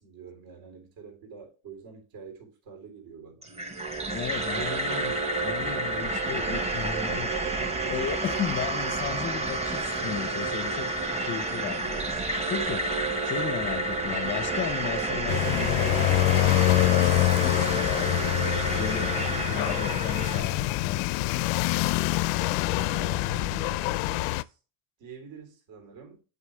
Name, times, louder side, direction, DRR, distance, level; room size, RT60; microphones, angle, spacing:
voice 1, 0.0-3.5 19.7-20.8 22.7-24.6 25.0-26.2, right 5 dB, 65° right, 3.6 m, -47 dB
sound 1, 3.4-20.4, right 2 dB, 15° right, 1.0 m, -30 dB
voice 2, 4.1-7.3 7.9-10.9 11.2-12.1 12.5-12.9 13.2-18.2 18.8-19.2 19.5-21.1, left 9 dB, 25° left, 0.5 m, -35 dB
sound 2, 5.9-23.9, right 4 dB, 40° right, 2.1 m, -45 dB
sound 3, 15.3-24.4, left 21 dB, 90° left, 0.6 m, -25 dB
9.6 x 5.7 x 3.2 m
cardioid pair, 150°, 49 cm